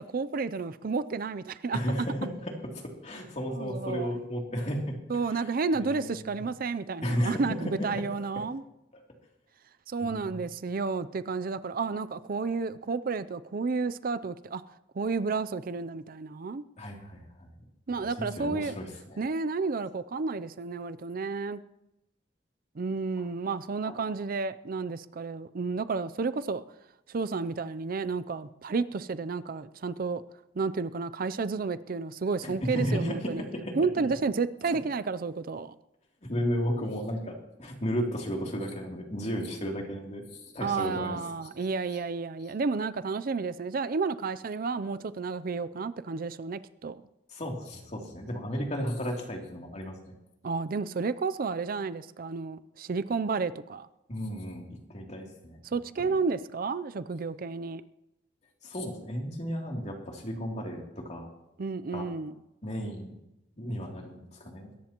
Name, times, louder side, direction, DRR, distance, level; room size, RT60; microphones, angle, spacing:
voice 1, 0.0-1.8 3.5-4.1 5.1-8.6 9.9-14.6 14.9-16.6 17.9-18.8 19.2-21.6 22.8-26.6 27.1-30.2 30.6-33.4 33.8-35.7 40.6-47.0 50.4-53.9 55.6-57.8 61.6-62.4, right 4 dB, 50° right, 0.5 m, -31 dB
voice 2, 1.7-5.0 5.3-5.4 5.8-6.3 7.0-7.4 7.8-8.0 10.0-10.4 16.8-17.5 17.9-19.2 23.9-24.0 32.4-33.8 36.2-41.2 47.3-50.0 54.1-54.6 54.9-55.6 58.6-61.3 61.9-62.1 62.6-63.1 63.6-64.7, equal, 40° left, 2.9 m, -34 dB
21.5 x 18.0 x 3.0 m
head